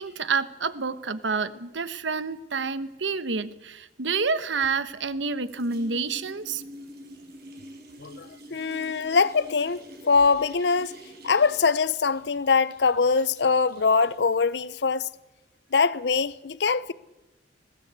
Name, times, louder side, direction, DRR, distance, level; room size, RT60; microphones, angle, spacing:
voice 1, 0.0-6.6, right 4 dB, 90° right, 1.1 m, -28 dB
sound 1, 4.6-5.2 5.5-14.8, equal, 60° right, 5.3 m, -47 dB
voice 2, 8.0-11.0 11.2-15.1 15.7-16.9, left 5 dB, 65° left, 0.7 m, -23 dB
21.0 x 16.0 x 8.2 m
head